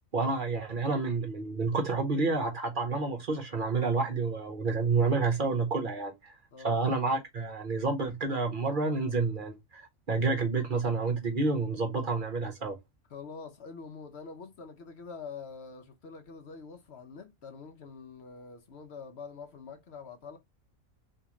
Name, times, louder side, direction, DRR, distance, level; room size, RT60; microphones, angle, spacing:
voice 1, 0.1-6.3 6.6-12.8, right 3 dB, 45° right, 0.8 m, -29 dB
voice 2, 6.5-6.9 13.1-20.4, left 5 dB, 60° left, 1.0 m, -45 dB
3.6 x 2.8 x 2.9 m
omnidirectional pair, 1.3 m